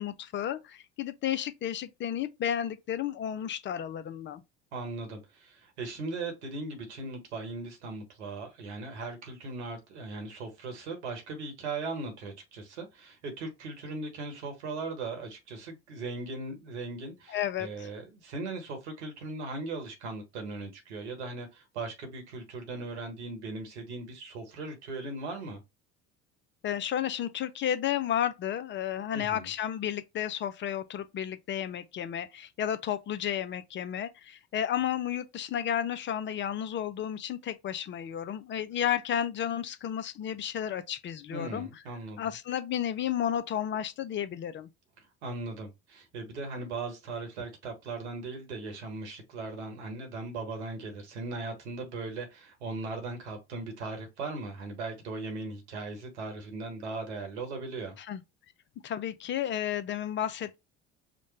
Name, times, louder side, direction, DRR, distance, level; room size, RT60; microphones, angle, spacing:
voice 1, 0.0-4.4 17.3-17.9 26.6-41.7 42.2-44.7 58.0-58.2 58.8-60.5, left 10 dB, 35° left, 0.5 m, -32 dB
voice 2, 4.7-25.6 29.1-29.5 41.3-42.3 45.2-58.0, right 3 dB, 80° right, 1.3 m, -38 dB
5.0 x 2.1 x 3.2 m
hypercardioid pair, 60°, 34 cm